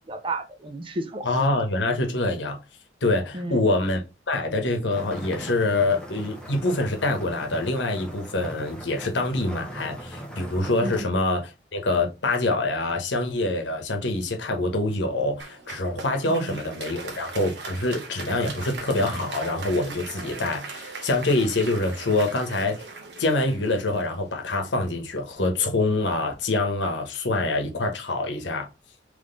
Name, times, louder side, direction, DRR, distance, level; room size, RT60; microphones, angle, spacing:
voice 1, 0.1-1.3 3.3-3.6 10.8-11.1 16.3-16.6, right 2 dB, 30° right, 0.6 m, -32 dB
voice 2, 1.2-2.6 3.0-4.0 4.3-22.8 23.2-28.7, left 2 dB, 80° left, 1.0 m, -25 dB
sound 1, 4.9-11.0, right 1 dB, 5° left, 0.9 m, -39 dB
Applause, 15.4-24.7, right 4 dB, 70° right, 1.0 m, -39 dB
3.7 x 3.2 x 3.8 m
head